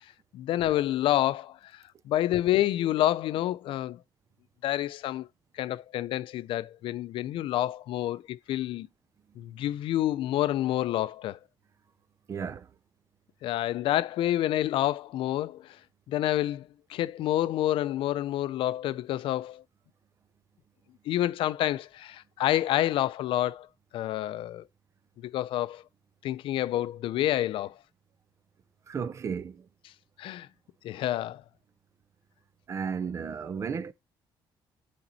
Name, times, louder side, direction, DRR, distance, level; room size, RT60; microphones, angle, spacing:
voice 1, 0.3-4.0 4.6-5.3 5.5-8.9 9.4-11.4 13.4-15.8 16.1-19.6 21.1-23.7 23.9-24.7 25.2-25.8 26.2-27.8 29.8-29.9 30.2-30.5 30.8-31.4, left 13 dB, 80° left, 0.4 m, -28 dB
voice 2, 12.3-12.7 28.9-29.6 32.7-33.9, right 6 dB, 35° right, 0.5 m, -33 dB
8.9 x 4.3 x 4.0 m
cardioid pair, 160°, 9 cm